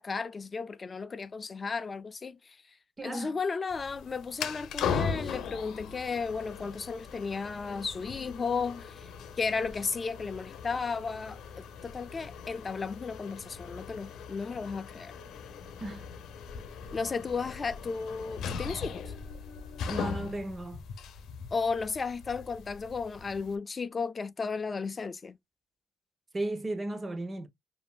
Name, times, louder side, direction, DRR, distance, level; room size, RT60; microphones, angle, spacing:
voice 1, 0.0-2.6 3.0-9.1 9.4-15.1 16.9-19.1 21.5-25.4, left 5 dB, 35° left, 0.4 m, -34 dB
voice 2, 3.0-3.4 15.8-16.1 19.9-20.8 26.3-27.5, right 1 dB, 30° right, 0.9 m, -35 dB
sound 1, 3.7-23.6, left 6 dB, 75° left, 0.7 m, -39 dB
5.3 x 2.6 x 2.3 m
cardioid pair, 90°, 0 cm